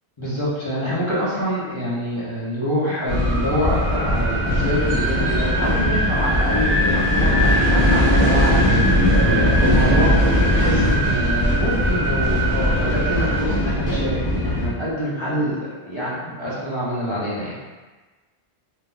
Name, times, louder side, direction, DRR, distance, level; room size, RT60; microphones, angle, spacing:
voice 1, 0.2-10.1 10.5-17.5, equal, 30° left, -8 dB, 0.9 m, -26 dB
sound 1, 3.1-14.7, equal, 10° right, 1.2 m, -20 dB
sound 2, 3.1-13.4, right 1 dB, 50° right, 0.4 m, -26 dB
2.8 x 2.4 x 3.7 m, 1.3 s
omnidirectional pair, 1.1 m